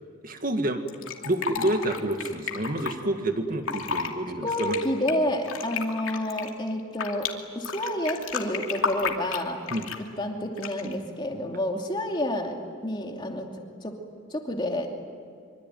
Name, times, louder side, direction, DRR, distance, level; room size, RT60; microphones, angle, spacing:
voice 1, 0.2-0.8 1.2-4.8 9.7-9.9, right 1 dB, 40° right, 6 dB, 2.0 m, -28 dB
Fill (with liquid), 0.9-2.9 3.5-4.1 4.5-7.3 7.6-10.1 10.6-11.0, left 5 dB, 75° left, 2.7 m, -32 dB
voice 2, 4.4-7.3 7.5-9.6 10.2-12.5 12.8-13.5 13.8-13.9 14.3-15.0, left 1 dB, 20° left, 2 dB, 2.8 m, -29 dB
25.0 x 25.0 x 9.4 m, 2.3 s
head